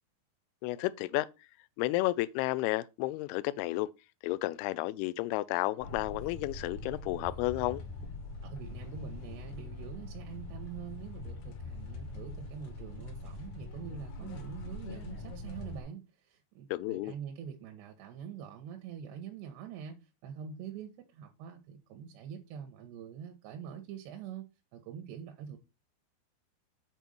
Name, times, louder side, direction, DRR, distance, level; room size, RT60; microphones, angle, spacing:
voice 1, 0.6-1.3 1.8-3.9 4.2-7.8 16.7-17.1, left 18 dB, 85° left, 2.3 m, -32 dB
sound 1, 5.8-15.8, left 2 dB, 55° left, 2.3 m, -43 dB
voice 2, 8.4-25.6, right 8 dB, 80° right, 3.0 m, -45 dB
7.7 x 4.5 x 5.3 m
omnidirectional pair, 5.0 m